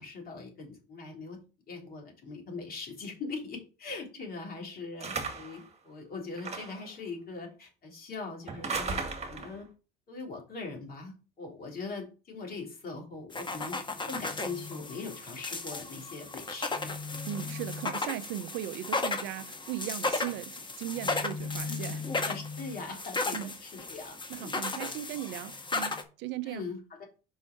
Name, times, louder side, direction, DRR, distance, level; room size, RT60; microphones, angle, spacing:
voice 1, 0.0-1.4 1.7-9.0 9.3-9.7 10.1-13.8 14.1-17.0 21.6-21.8 22.3-24.5 26.5-27.1, left 4 dB, 50° left, 3.2 m, -41 dB
sound 1, 5.0-5.6 6.4-6.9 8.5-9.6, right 4 dB, 35° right, 1.9 m, -35 dB
sound 2, 13.3-26.0, left 3 dB, 25° left, 1.3 m, -35 dB
voice 2, 17.3-22.0 23.3-23.5 24.3-26.7, right 12 dB, 65° right, 0.6 m, -38 dB
5.4 x 4.4 x 4.5 m
supercardioid pair, 70°, 20 cm